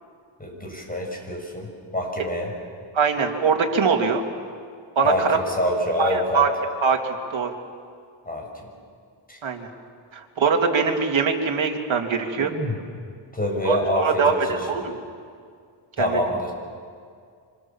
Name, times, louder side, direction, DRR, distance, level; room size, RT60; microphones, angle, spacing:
voice 1, 0.4-2.5 5.0-6.4 8.3-8.7 9.3-9.4 12.4-12.8 13.3-14.8 16.0-16.5, left 1 dB, 15° left, 1 dB, 7.1 m, -26 dB
voice 2, 2.9-4.2 5.0-5.4 6.0-6.5 6.8-7.5 9.4-9.7 10.1-12.5 13.6-15.0 16.0-16.2, right 5 dB, 70° right, 3 dB, 2.7 m, -22 dB
26.0 x 26.0 x 7.3 m, 2.2 s
wide cardioid pair, 90°, 48 cm